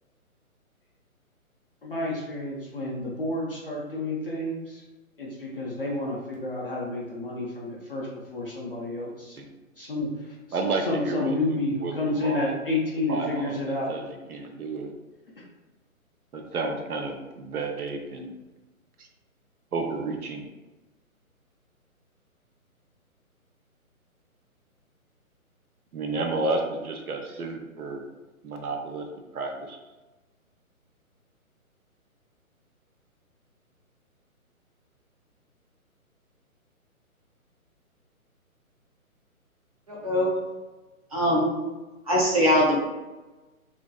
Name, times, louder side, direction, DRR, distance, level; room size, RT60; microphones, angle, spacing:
voice 1, 1.8-4.8 5.2-9.4 9.7-13.9, left 2 dB, 40° left, -5 dB, 0.4 m, -30 dB
voice 2, 10.5-11.4 11.8-12.5 13.1-14.9 16.3-18.4 19.0-19.1 19.7-20.4 25.9-28.0 28.4-29.1 29.3-29.8, right 3 dB, 85° right, 3 dB, 0.6 m, -31 dB
voice 3, 41.1-41.5 42.1-42.8, equal, 25° right, -6 dB, 0.6 m, -21 dB
2.5 x 2.2 x 2.3 m, 1.1 s
figure-of-eight pair, 140°, 43 cm